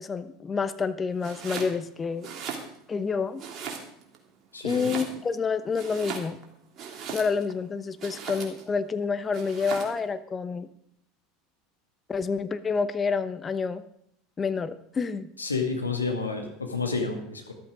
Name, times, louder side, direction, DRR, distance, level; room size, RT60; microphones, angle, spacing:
voice 1, 0.0-2.3 2.9-3.4 4.6-6.4 7.1-10.7 12.1-13.8 14.4-15.3, left 5 dB, 25° left, 12 dB, 1.0 m, -28 dB
Domestic sounds home sounds, 1.2-1.8 2.1-3.0 3.4-4.2 4.6-5.4 5.7-7.5 8.0-8.7 9.3-10.0, right 6 dB, 40° right, 3.0 m, -38 dB
voice 2, 4.5-4.9 15.4-17.5, left 4 dB, 90° left, 3 dB, 2.1 m, -30 dB
13.5 x 12.5 x 5.0 m, 0.70 s
figure-of-eight pair, 75°, 0 cm